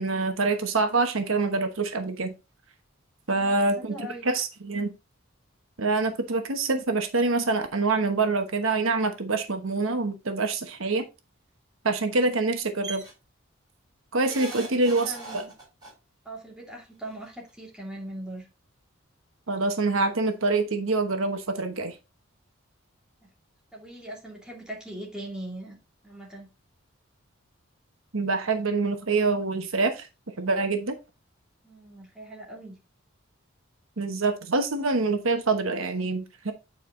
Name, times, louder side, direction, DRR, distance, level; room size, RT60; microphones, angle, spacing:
voice 1, 0.0-2.3 3.3-4.9 5.8-11.0 11.8-13.0 14.1-15.4 19.5-21.9 28.1-30.1 30.4-30.9 34.0-36.5, right 3 dB, 75° right, 6 dB, 1.1 m, -26 dB
voice 2, 3.3-4.3 14.6-14.8 15.0-15.5 16.2-18.5 23.7-25.8 26.0-26.5 31.6-32.7, right 1 dB, 5° right, -3 dB, 2.6 m, -40 dB
sound 1, 12.8-13.1 14.2-15.9 17.1-17.2 17.5-17.6, right 3 dB, 20° right, 4.3 m, -40 dB
9.1 x 4.7 x 3.8 m, 0.27 s
head